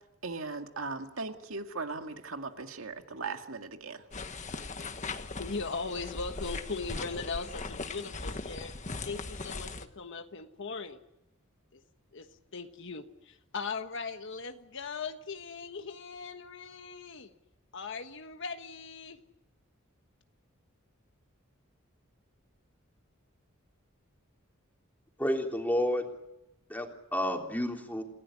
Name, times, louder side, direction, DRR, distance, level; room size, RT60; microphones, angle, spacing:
voice 1, 0.2-4.0, right 3 dB, 75° right, 5 dB, 2.1 m, -38 dB
sound 1, 4.1-9.9, left 3 dB, 35° left, 1.4 m, -39 dB
voice 2, 5.2-8.7 9.0-11.0 11.7-11.8 12.1-17.3 17.7-19.2, left 4 dB, 65° left, 7 dB, 1.3 m, -39 dB
voice 3, 25.2-26.0 26.7-26.9 27.1-28.0, equal, 10° left, 1 dB, 3.5 m, -30 dB
29.5 x 16.5 x 9.9 m, 0.92 s
head